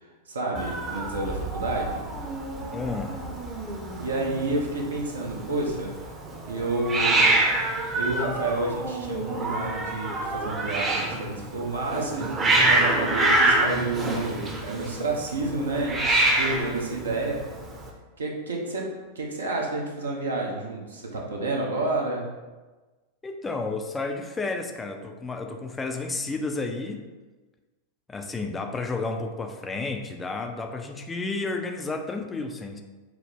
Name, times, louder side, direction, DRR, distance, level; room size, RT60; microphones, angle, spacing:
voice 1, 0.0-2.0 4.0-5.9 6.5-7.3 8.0-17.4 18.2-18.9 19.1-22.3, right 2 dB, 70° right, 0 dB, 0.8 m, -30 dB
Hiss, 0.5-17.9, right 2 dB, 25° right, 0.7 m, -26 dB
voice 2, 2.7-3.2 23.2-27.0 28.1-32.8, left 3 dB, 15° left, 4 dB, 0.4 m, -31 dB
6.0 x 2.1 x 3.5 m, 1.2 s
figure-of-eight pair, 90°, 0 cm